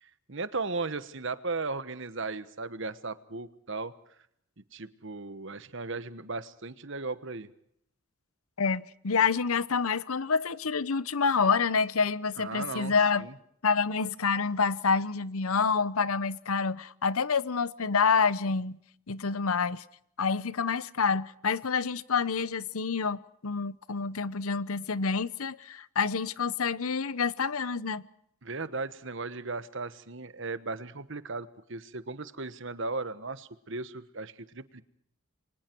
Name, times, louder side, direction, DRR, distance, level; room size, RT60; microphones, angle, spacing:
voice 1, 0.0-3.9 4.7-7.5 12.4-13.3 28.4-34.8, right 3 dB, 55° right, 1.3 m, -36 dB
voice 2, 8.6-13.3 13.6-18.8 19.1-19.8 20.2-28.0, left 5 dB, 80° left, 0.9 m, -28 dB
29.0 x 24.0 x 4.6 m
head